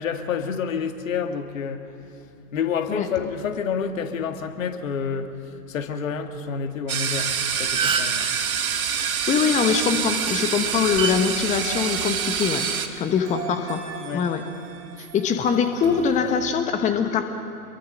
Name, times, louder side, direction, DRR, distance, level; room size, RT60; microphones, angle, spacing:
voice 1, 0.0-8.2 14.0-14.3, left 6 dB, 55° left, 7 dB, 2.0 m, -29 dB
sound 1, 6.9-12.9, right 7 dB, 65° right, 2.0 m, -26 dB
sound 2, 7.3-7.4 7.6-8.2 9.9-10.1 11.0-11.1 12.2-12.4, right 6 dB, 10° right, 0.9 m, -26 dB
voice 2, 9.0-12.7 13.0-13.8 14.1-14.4 15.0-17.2, left 6 dB, 15° left, 7 dB, 1.1 m, -23 dB
sound 3, 11.5-16.6, right 5 dB, 40° right, 4.5 m, -41 dB
27.5 x 22.5 x 6.5 m, 2.8 s
figure-of-eight pair, 110°, 46 cm